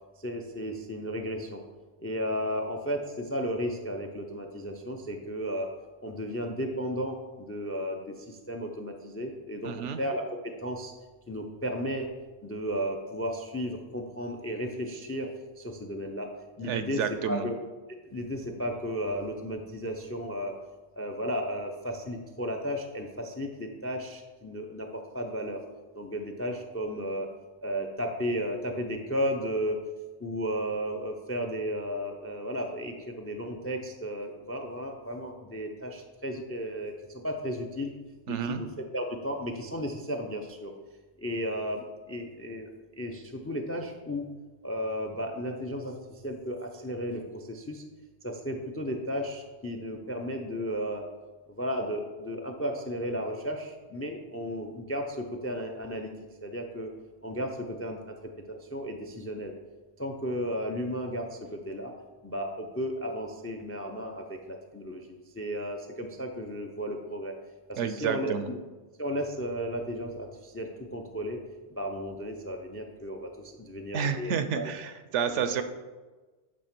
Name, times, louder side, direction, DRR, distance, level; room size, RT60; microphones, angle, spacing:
voice 1, 0.2-1.6 2.0-5.7 6.0-10.9 11.3-12.1 12.4-15.3 15.6-16.3 16.6-17.5 18.1-20.6 20.9-25.6 25.9-27.3 27.6-29.8 30.2-37.9 38.3-40.7 41.2-42.7 43.0-44.2 44.6-47.8 48.2-51.0 51.5-56.1 56.4-56.9 57.2-59.5 60.0-61.9 62.2-67.3 67.7-68.6 69.0-71.4 71.7-74.7, equal, 25° left, 4 dB, 0.3 m, -34 dB
voice 2, 9.6-10.0 16.6-17.4 38.3-38.6 67.8-68.5 73.9-75.6, right 7 dB, 75° right, 9 dB, 0.9 m, -30 dB
8.4 x 3.6 x 5.9 m, 1.3 s
omnidirectional pair, 1.2 m